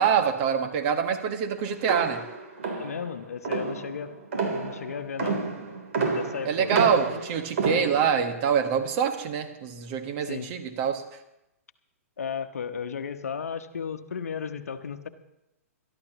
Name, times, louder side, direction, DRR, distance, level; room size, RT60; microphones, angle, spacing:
voice 1, 0.0-2.2 6.4-11.0, right 7 dB, 45° right, 6 dB, 1.5 m, -25 dB
sound 1, 1.8-8.3, right 4 dB, 60° right, 3.4 m, -30 dB
voice 2, 2.7-5.4 6.1-6.7 10.2-10.5 12.2-15.1, left 6 dB, 75° left, 9 dB, 1.0 m, -35 dB
22.0 x 13.0 x 3.0 m, 0.88 s
hypercardioid pair, 120°, 8 cm